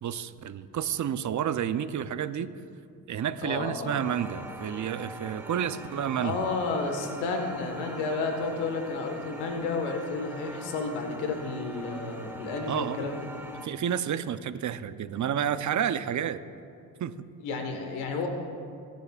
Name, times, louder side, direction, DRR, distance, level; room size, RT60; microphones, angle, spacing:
voice 1, 0.0-2.5 3.1-6.5 12.7-13.1 13.6-16.4 17.0-17.1, right 9 dB, 45° right, 12 dB, 0.7 m, -30 dB
voice 2, 3.4-4.0 6.2-13.3 17.4-18.3, left 3 dB, 85° left, 3 dB, 1.6 m, -31 dB
sound 1, 3.9-13.7, right 1 dB, 5° right, 1.5 m, -43 dB
22.0 x 10.5 x 2.5 m, 2.4 s
supercardioid pair, 60°, 41 cm